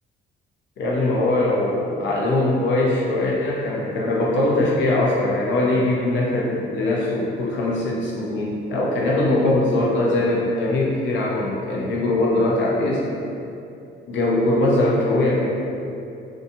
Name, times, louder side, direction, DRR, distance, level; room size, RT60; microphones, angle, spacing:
voice 1, 0.8-13.0 14.1-15.4, left 2 dB, 70° left, -4 dB, 0.6 m, -21 dB
2.6 x 2.3 x 2.6 m, 2.7 s
cardioid pair, 90°, 20 cm